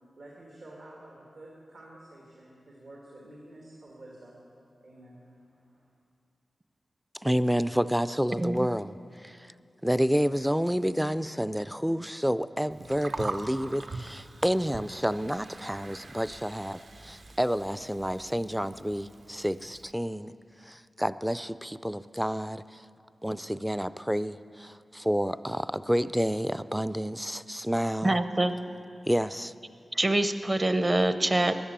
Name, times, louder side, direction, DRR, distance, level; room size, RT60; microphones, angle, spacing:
voice 1, 0.2-4.4 4.8-5.9, right 1 dB, 75° right, -4 dB, 2.8 m, -50 dB
voice 2, 7.2-9.5 9.8-20.3 20.6-22.8 23.2-28.2 29.1-29.5, equal, 5° right, 15 dB, 0.3 m, -29 dB
Gurgling, 12.7-19.9, right 3 dB, 60° right, 0.8 m, -43 dB
voice 3, 28.0-28.6 29.9-31.6, right 1 dB, 25° right, 10 dB, 0.7 m, -25 dB
14.0 x 11.0 x 8.8 m, 2.4 s
wide cardioid pair, 105°, 0 cm